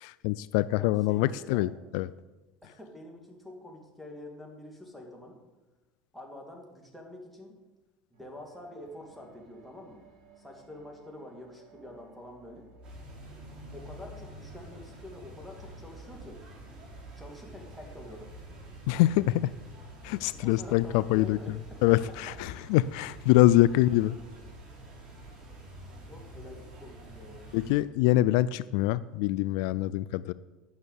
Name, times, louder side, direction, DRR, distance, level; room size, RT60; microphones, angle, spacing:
voice 1, 0.0-2.1 18.9-19.5 20.0-21.6 21.8-24.2 27.5-30.3, left 16 dB, 75° left, 17 dB, 0.3 m, -25 dB
voice 2, 0.7-1.6 2.6-5.4 6.1-7.5 8.1-10.0 10.4-12.7 13.7-16.4 17.1-18.3 20.3-21.8 26.1-27.5, left 1 dB, ahead, -1 dB, 2.7 m, -46 dB
sound 1, 8.1-17.7 18.5-18.6, equal, 80° right, 3.2 m, -53 dB
sound 2, 12.8-27.8, right 1 dB, 35° right, 3.6 m, -48 dB
9.4 x 6.3 x 8.2 m, 1.1 s
supercardioid pair, 115°, 3 cm